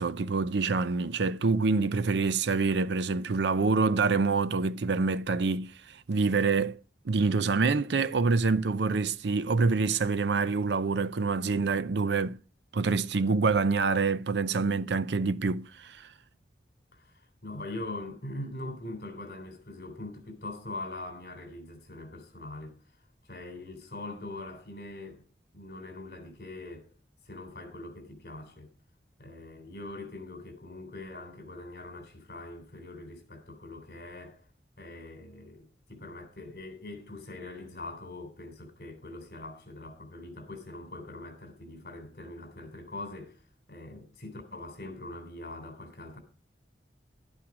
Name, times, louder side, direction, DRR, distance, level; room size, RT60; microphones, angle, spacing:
voice 1, 0.0-5.7 6.1-6.8 7.1-12.4 12.7-16.0, right 4 dB, 75° right, 0.6 m, -26 dB
voice 2, 16.9-22.7 23.2-25.2 25.5-26.9 27.2-28.7 29.2-34.5 34.8-43.4 43.7-46.2, left 2 dB, 60° left, 3.4 m, -42 dB
11.5 x 8.9 x 4.9 m
head